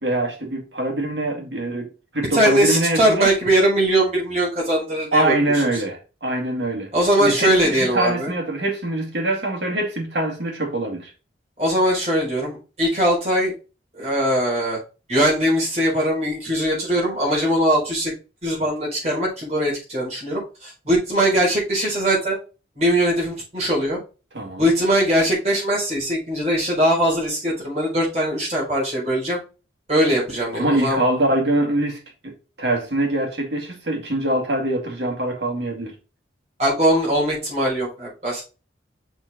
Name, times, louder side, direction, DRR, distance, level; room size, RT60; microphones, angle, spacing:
voice 1, 0.0-3.3 5.1-6.9 7.2-11.1 24.3-24.7 30.5-32.3 32.6-35.9, right 1 dB, 70° right, 2.2 m, -23 dB
voice 2, 2.3-5.3 5.7-5.8 6.9-8.3 11.6-13.5 13.9-14.8 15.1-18.1 18.4-22.4 22.8-24.0 24.6-29.4 29.9-31.0 36.6-38.4, right 1 dB, 35° right, 4.0 m, -21 dB
6.2 x 4.2 x 4.0 m
head